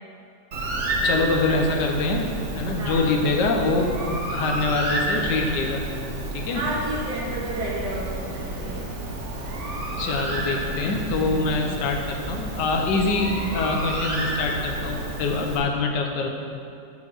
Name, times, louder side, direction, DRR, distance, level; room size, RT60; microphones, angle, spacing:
Bird, 0.5-15.6, right 1 dB, 45° right, 1.2 m, -30 dB
voice 1, 1.0-5.8 6.3-6.6 9.9-16.3, left 3 dB, 75° left, 2 dB, 1.5 m, -24 dB
voice 2, 6.5-8.9, right 1 dB, 60° right, -7 dB, 2.5 m, -31 dB
7.2 x 5.2 x 6.3 m, 2.5 s
omnidirectional pair, 2.0 m